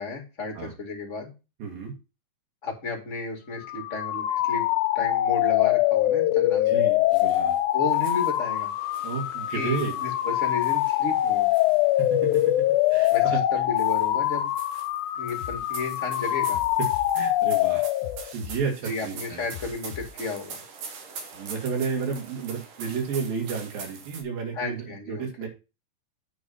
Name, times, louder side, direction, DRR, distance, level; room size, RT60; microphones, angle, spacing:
voice 1, 0.0-1.3 2.6-4.6 4.9-6.8 7.7-8.7 9.5-11.5 13.1-14.5 15.1-16.6 18.8-20.6 24.5-25.3, left 3 dB, 25° left, 1 dB, 2.2 m, -33 dB
voice 2, 1.6-1.9 6.7-7.6 9.0-10.0 12.0-12.4 12.9-13.4 17.1-17.8 18.3-19.4 21.3-25.5, right 5 dB, 90° right, 2 dB, 3.9 m, -31 dB
sound 1, 3.6-18.3, left 14 dB, 85° left, 1.7 m, -24 dB
sound 2, 7.1-7.6 7.9-13.4 13.8-24.2, right 5 dB, 70° right, 2.9 m, -44 dB
sound 3, 15.4-15.6 16.5-17.1 18.0-18.6 19.5-20.1, left 7 dB, 60° left, 1.6 m, -39 dB
9.3 x 4.4 x 5.6 m, 0.29 s
omnidirectional pair, 4.0 m